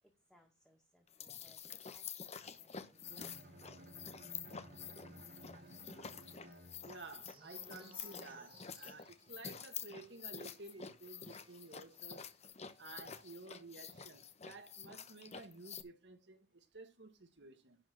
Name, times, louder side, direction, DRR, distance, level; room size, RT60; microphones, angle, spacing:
voice 1, 0.0-4.1, equal, ahead, 2.1 m, -71 dB
sound 1, 1.1-15.8, left 7 dB, 40° left, 0.9 m, -49 dB
Bowed string instrument, 2.9-7.2, equal, 60° right, 3.3 m, -56 dB
sound 2, 5.6-12.3 12.6-12.8 13.0-13.3, right 3 dB, 30° right, 2.1 m, -64 dB
voice 2, 6.8-12.3 12.8-17.8, right 3 dB, 80° right, 2.0 m, -53 dB
11.0 x 4.4 x 6.3 m
head